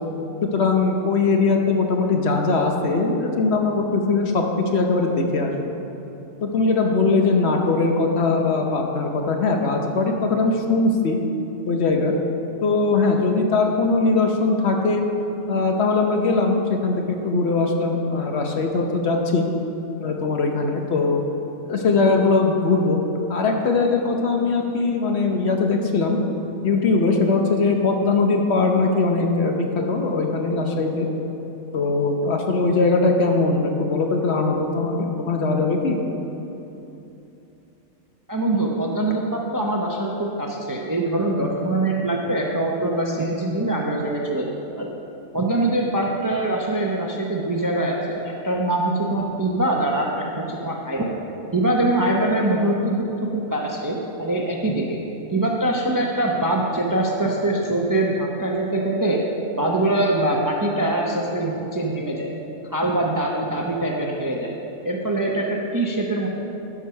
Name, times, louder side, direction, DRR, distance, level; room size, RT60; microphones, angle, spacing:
voice 1, 0.4-4.4 4.7-5.6 6.4-11.2 11.7-12.1 12.6-15.0 15.5-19.5 20.0-21.2 21.7-23.0 23.3-26.2 26.6-31.1 31.7-36.0, left 3 dB, 55° left, 2 dB, 1.0 m, -21 dB
voice 2, 38.3-44.9 45.3-51.1 51.5-55.0 55.3-59.2 59.6-62.3 62.7-64.6 64.8-66.3, right 1 dB, 25° right, -1 dB, 0.5 m, -23 dB
12.5 x 4.9 x 5.6 m, 3.0 s
omnidirectional pair, 1.5 m